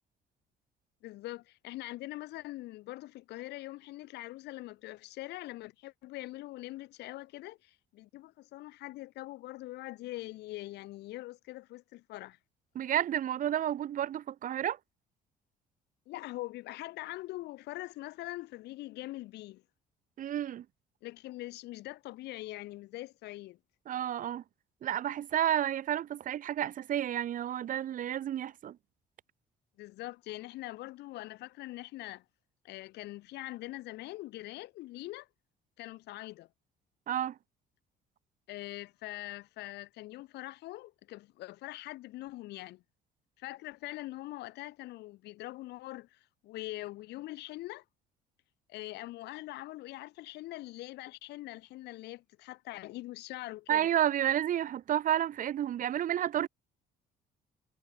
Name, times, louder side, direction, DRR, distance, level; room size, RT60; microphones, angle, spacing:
voice 1, 1.0-12.4 16.1-19.6 21.0-23.6 29.8-32.2 32.6-35.3 35.8-36.5 38.5-42.8 43.4-47.8 48.7-53.9, left 17 dB, 85° left, 7.7 m, -43 dB
voice 2, 12.7-14.8 20.2-20.6 23.9-24.4 24.8-28.8 37.1-37.4 53.7-56.5, right 11 dB, 50° right, 1.0 m, -31 dB
cardioid pair, 110°, 17 cm